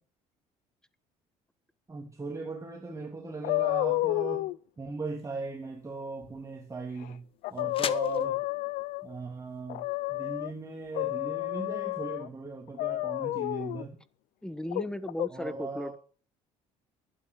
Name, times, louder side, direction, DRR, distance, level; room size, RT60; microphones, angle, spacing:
voice 1, 1.9-8.4 9.0-14.0 15.3-16.0, right 3 dB, 25° right, 3.0 m, -38 dB
sound 1, 3.4-4.6 7.0-7.1 7.4-9.1 9.7-10.5 10.9-12.3 12.8-13.8 14.7-15.3, left 18 dB, 80° left, 0.5 m, -30 dB
sound 2, 5.1-11.0, left 7 dB, 40° left, 1.1 m, -44 dB
voice 2, 14.4-16.0, left 1 dB, 5° left, 1.2 m, -36 dB
12.5 x 11.0 x 5.0 m
cardioid pair, 95°, 14 cm